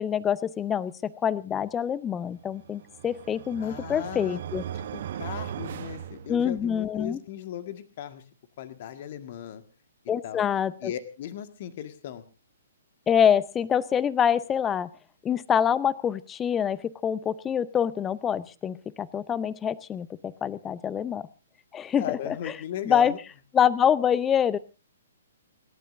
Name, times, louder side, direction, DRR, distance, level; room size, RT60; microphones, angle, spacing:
voice 1, 0.0-4.6 6.3-7.2 10.1-10.9 13.1-14.9 15.2-21.2 21.7-22.5 22.8-23.1 23.5-24.6, left 8 dB, 15° left, 20 dB, 0.7 m, -26 dB
sound 1, 2.5-6.8, right 10 dB, 45° right, 1.0 m, -38 dB
voice 2, 3.6-4.4 4.9-8.2 8.6-9.6 10.2-10.5 10.8-12.2 22.0-23.2, left 10 dB, 40° left, 9 dB, 1.8 m, -37 dB
29.5 x 12.5 x 2.7 m, 0.32 s
figure-of-eight pair, 120°, 0 cm